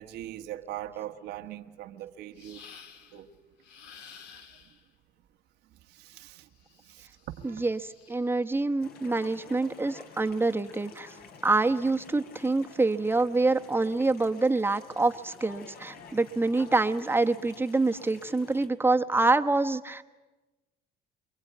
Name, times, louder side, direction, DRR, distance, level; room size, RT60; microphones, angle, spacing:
voice 1, 0.0-2.6 3.1-3.3 5.9-6.5 6.8-7.1 7.4-7.6 16.0-16.1, right 12 dB, 85° right, 1.5 m, -41 dB
sound 1, 2.4-3.2 3.6-4.9 6.6-8.5, left 7 dB, 85° left, 2.5 m, -52 dB
voice 2, 7.4-11.2 11.4-20.0, right 3 dB, 15° right, 1.1 m, -26 dB
sound 2, 8.8-18.7, left 5 dB, 70° left, 3.2 m, -50 dB
27.5 x 22.5 x 9.3 m
cardioid pair, 110°, 17 cm